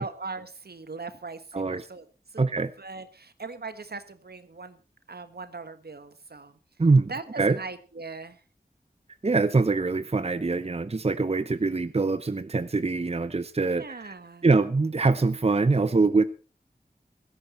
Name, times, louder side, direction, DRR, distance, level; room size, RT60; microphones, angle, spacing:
voice 1, 0.0-4.8 5.1-6.6 7.1-8.4 13.7-14.5, right 4 dB, 75° right, 12 dB, 1.4 m, -40 dB
voice 2, 2.4-2.7 6.8-7.1 7.4-7.6 9.2-14.1 14.4-16.2, right 3 dB, 40° right, 13 dB, 0.7 m, -23 dB
16.0 x 13.5 x 4.3 m, 0.36 s
wide cardioid pair, 55°, 17 cm